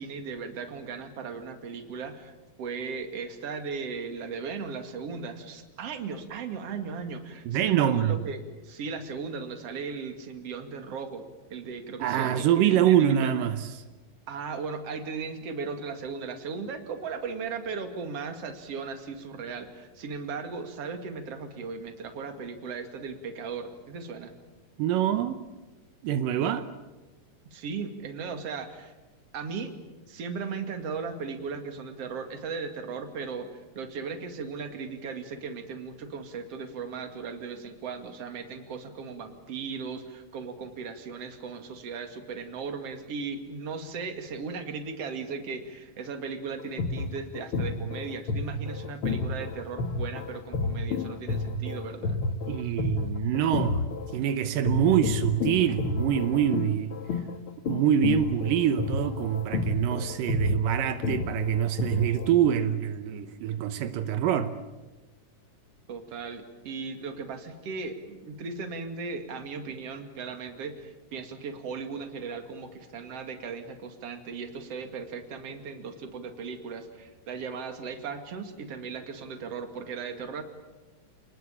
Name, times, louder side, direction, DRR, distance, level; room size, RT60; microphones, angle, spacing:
voice 1, 0.0-2.3 2.6-8.4 8.6-13.5 14.3-24.3 27.5-28.9 29.3-29.7 30.1-52.2 65.9-80.4, right 5 dB, 50° right, 3.1 m, -37 dB
voice 2, 7.5-8.2 12.0-13.7 24.8-25.4 26.0-26.7 52.5-53.9 54.1-57.0 57.7-64.5, right 9 dB, 85° right, 2.7 m, -25 dB
sound 1, 46.6-54.3 54.7-62.3, left 3 dB, 50° left, 2.0 m, -30 dB
29.0 x 20.5 x 8.6 m
omnidirectional pair, 3.8 m